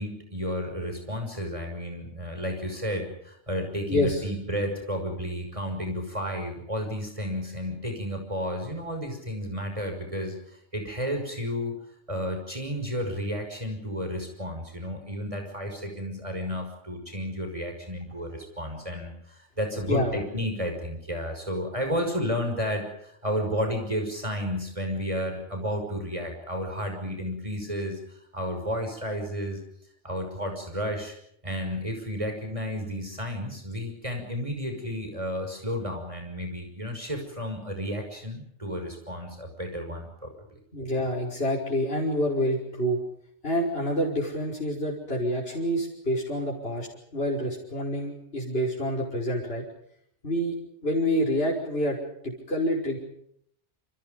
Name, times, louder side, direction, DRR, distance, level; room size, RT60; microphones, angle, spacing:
voice 1, 0.0-11.7 12.1-29.6 30.0-31.2 31.4-40.3, equal, 25° right, 4 dB, 6.2 m, -32 dB
voice 2, 3.9-4.2 19.8-20.2 40.7-43.0 43.4-49.7 50.2-50.6 50.8-52.0 52.2-53.0, equal, 55° left, -3 dB, 5.8 m, -27 dB
29.5 x 27.5 x 5.4 m, 0.71 s
omnidirectional pair, 1.2 m